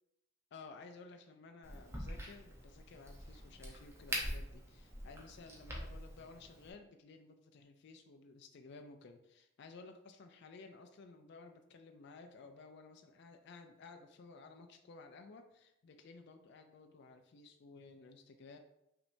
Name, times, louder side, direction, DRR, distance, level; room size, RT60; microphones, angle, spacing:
voice 1, 0.5-18.6, left 3 dB, 55° left, 6 dB, 0.4 m, -55 dB
Crack, 1.6-6.7, equal, 15° right, 0.7 m, -44 dB
5.7 x 3.2 x 2.6 m, 0.83 s
head